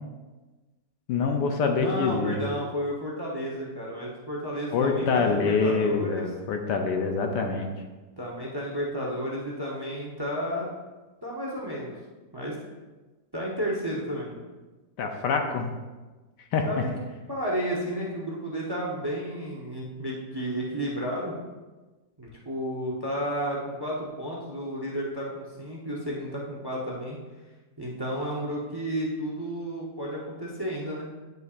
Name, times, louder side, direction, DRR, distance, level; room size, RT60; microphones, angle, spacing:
voice 1, 1.1-2.4 4.7-7.7 15.0-15.7 16.5-16.7, left 4 dB, 70° left, 4 dB, 1.2 m, -25 dB
voice 2, 1.8-6.3 8.2-10.7 11.2-12.0 12.3-12.6 13.3-14.4 16.6-16.9 17.3-21.3 22.2-27.2 27.8-31.1, equal, 35° right, -3 dB, 0.4 m, -32 dB
9.1 x 5.6 x 2.5 m, 1.2 s
omnidirectional pair, 2.0 m